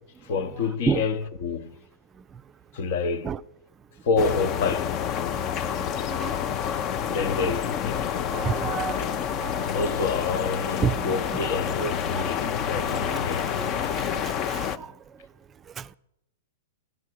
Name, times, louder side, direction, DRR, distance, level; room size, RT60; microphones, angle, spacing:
voice 1, 0.2-1.7 2.7-3.3 4.0-4.9 7.1-8.0 9.7-13.5 13.7-14.2, left 4 dB, 60° left, 1.1 m, -28 dB
sound 1, 4.2-14.8, left 8 dB, 35° left, 0.6 m, -28 dB
voice 2, 5.3-6.3 8.3-9.7 10.8-14.9 15.8-15.9, right 7 dB, 25° right, 0.5 m, -32 dB
sound 2, 8.1-8.6 9.0-12.0 12.4-14.2, left 3 dB, 90° left, 0.5 m, -40 dB
13.5 x 11.0 x 6.4 m
hypercardioid pair, 115°, 0 cm